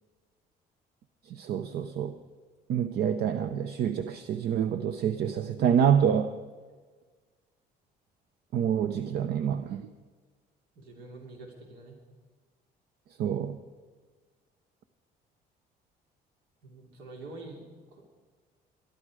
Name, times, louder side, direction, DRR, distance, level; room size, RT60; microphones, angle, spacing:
voice 1, 1.3-2.1 2.7-6.3 8.5-9.9 13.2-13.6, right 8 dB, 70° right, 10 dB, 0.7 m, -27 dB
voice 2, 10.7-12.0 16.6-18.0, right 2 dB, 85° right, 1 dB, 2.8 m, -46 dB
21.5 x 12.0 x 4.9 m, 1.4 s
cardioid pair, 110°, 17 cm